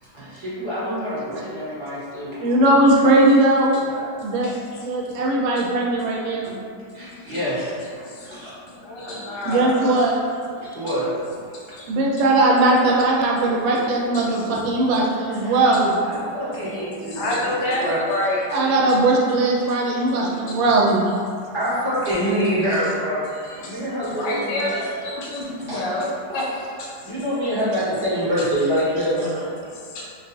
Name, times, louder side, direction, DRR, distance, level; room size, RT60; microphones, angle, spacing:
voice 1, 0.0-2.6 6.9-7.8 8.2-8.5 9.1-9.2 10.6-11.1 14.9-15.7 16.0-17.2 17.8-18.0 21.5-24.6 25.7-25.9 27.0-29.2, equal, 20° right, -13 dB, 0.9 m, -26 dB
voice 2, 2.4-3.8 4.2-4.5 4.8-6.7 9.4-10.2 11.9-16.0 18.5-21.0, right 2 dB, 85° right, -2 dB, 1.3 m, -19 dB
voice 3, 3.7-4.6 5.1-5.2 5.6-5.7 6.0-6.1 6.4-6.6 6.9-7.2 8.0-8.4 8.7-10.9 11.5-11.9 13.5-15.0 15.7-15.8 17.1-18.6 20.1-21.2 23.4-27.4 29.7-30.1, left 1 dB, 75° left, -4 dB, 1.2 m, -30 dB
4.2 x 2.3 x 2.4 m, 2.2 s
omnidirectional pair, 2.0 m